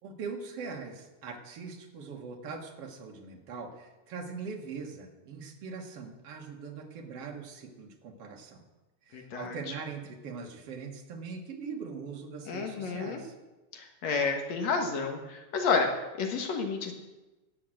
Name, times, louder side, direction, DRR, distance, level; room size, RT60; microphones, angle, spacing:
voice 1, 0.0-8.6 9.0-13.3, right 5 dB, 55° right, 2 dB, 2.3 m, -41 dB
voice 2, 9.1-9.6 12.5-13.2 13.7-15.9 16.2-16.9, left 5 dB, 60° left, 3 dB, 2.4 m, -30 dB
17.0 x 5.8 x 7.7 m, 1.1 s
omnidirectional pair, 3.6 m